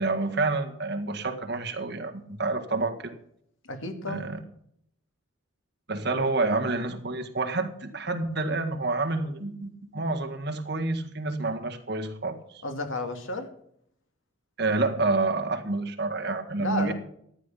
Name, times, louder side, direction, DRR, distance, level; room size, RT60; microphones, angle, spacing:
voice 1, 0.0-3.1 4.1-4.4 5.9-12.6 14.6-16.9, right 3 dB, 50° right, 6 dB, 1.7 m, -28 dB
voice 2, 3.6-4.2 12.6-13.5 16.6-16.9, left 2 dB, 75° left, 6 dB, 2.3 m, -32 dB
14.0 x 10.0 x 5.6 m, 0.68 s
head